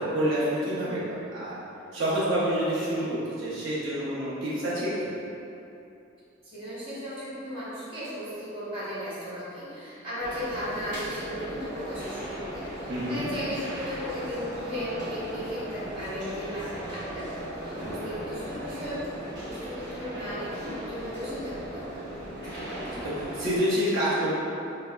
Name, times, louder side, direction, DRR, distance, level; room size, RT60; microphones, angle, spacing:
voice 1, 0.0-1.6 1.9-5.1 12.9-13.3 17.8-18.3 22.3-24.3, equal, 80° right, -10 dB, 0.9 m, -28 dB
voice 2, 6.4-16.7 17.1-19.1 19.4-21.5 21.8-22.1, equal, 25° right, -13 dB, 1.1 m, -36 dB
sound 1, 10.2-23.6, equal, 50° right, 1.0 m, -37 dB
5.1 x 2.1 x 2.2 m, 2.8 s
head